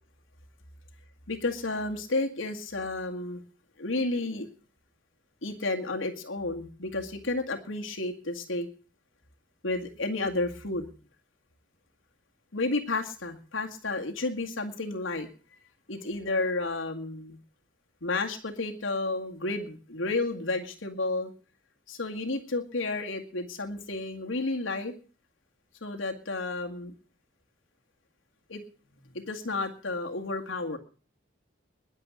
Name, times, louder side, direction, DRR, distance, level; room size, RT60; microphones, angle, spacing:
voice 1, 1.3-3.4 3.8-4.5 5.4-8.7 9.6-10.9 12.5-15.3 15.9-17.4 18.0-21.3 21.9-24.9 25.8-26.9 28.5-28.6 29.1-30.8, left 2 dB, 85° left, 3 dB, 2.0 m, -31 dB
21.0 x 7.6 x 6.2 m, 0.39 s
head